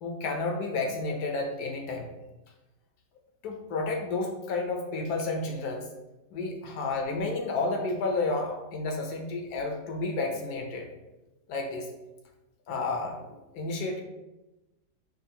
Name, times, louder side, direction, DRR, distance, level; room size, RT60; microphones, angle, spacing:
voice 1, 0.0-2.1 3.4-5.9 6.3-10.9 11.5-11.9 12.7-14.0, left 3 dB, 70° left, 2 dB, 1.1 m, -31 dB
5.2 x 2.4 x 2.8 m, 1.0 s
omnidirectional pair, 1.8 m